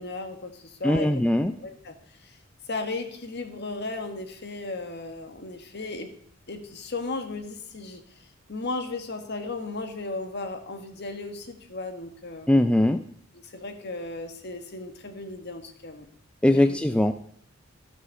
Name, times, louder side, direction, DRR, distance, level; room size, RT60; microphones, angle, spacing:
voice 1, 0.0-1.1 1.6-1.9 2.2-2.4 2.7-6.1 6.5-12.5 13.3-16.1 16.5-16.8, left 3 dB, 55° left, 7 dB, 1.6 m, -35 dB
voice 2, 0.8-1.5 12.5-13.0 16.4-17.1, left 1 dB, 5° left, 9 dB, 0.4 m, -20 dB
13.5 x 6.4 x 6.5 m, 0.63 s
head